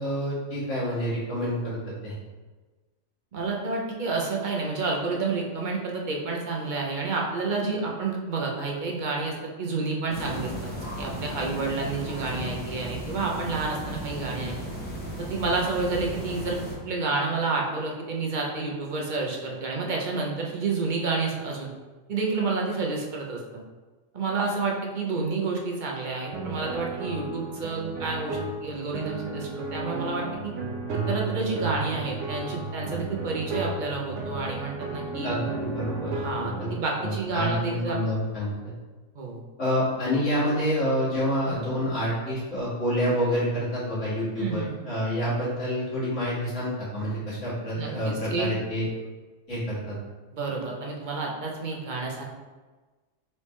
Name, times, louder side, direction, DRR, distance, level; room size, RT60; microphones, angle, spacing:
voice 1, 0.0-2.1 35.2-36.1 36.4-36.7 37.0-38.7 39.6-48.9 49.5-50.0, equal, 70° left, -9 dB, 2.1 m, -28 dB
voice 2, 3.3-10.7 11.0-14.5 15.2-21.7 22.1-23.6 24.1-30.5 31.1-35.3 36.1-38.0 39.2-39.4 44.4-44.9 47.7-48.5 50.3-52.2, right 3 dB, 45° right, -1 dB, 0.7 m, -29 dB
sound 1, 10.1-16.7, equal, 10° left, 0.8 m, -35 dB
sound 2, 26.3-36.8, right 3 dB, 75° right, 0.9 m, -33 dB
4.3 x 3.4 x 3.1 m, 1.3 s
omnidirectional pair, 1.3 m